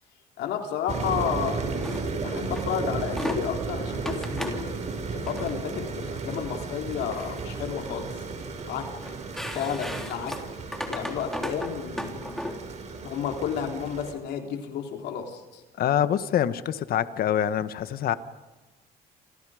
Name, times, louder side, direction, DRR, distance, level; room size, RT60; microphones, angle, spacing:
voice 1, 0.4-4.9 5.1-8.2 8.7-8.9 9.5-10.4 10.8-12.4 13.0-15.6, left 8 dB, 80° left, 3 dB, 3.7 m, -32 dB
sound 1, 0.9-14.1, right 4 dB, 45° right, 5.8 m, -34 dB
sound 2, 1.7-2.0 2.5-2.6 3.0-3.4 4.0-4.6 5.2-5.5 6.3-6.5 6.9-7.6 7.9-8.6 9.0-12.6, left 1 dB, ahead, 3.9 m, -35 dB
voice 2, 15.8-18.1, left 10 dB, 60° left, 12 dB, 1.5 m, -25 dB
28.5 x 28.5 x 5.1 m, 1.2 s
cardioid pair, 110°, 17 cm